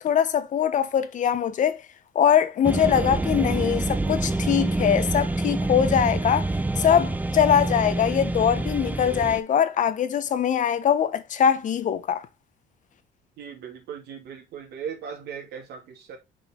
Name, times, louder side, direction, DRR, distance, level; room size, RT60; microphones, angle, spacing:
voice 1, 0.0-1.8 2.1-6.5 6.8-12.3, left 8 dB, 50° left, 0.9 m, -22 dB
sound 1, 2.6-9.4, right 2 dB, 10° right, 0.5 m, -26 dB
voice 2, 13.4-16.2, right 7 dB, 75° right, 2.5 m, -38 dB
6.3 x 3.9 x 4.4 m
cardioid pair, 110°, 17 cm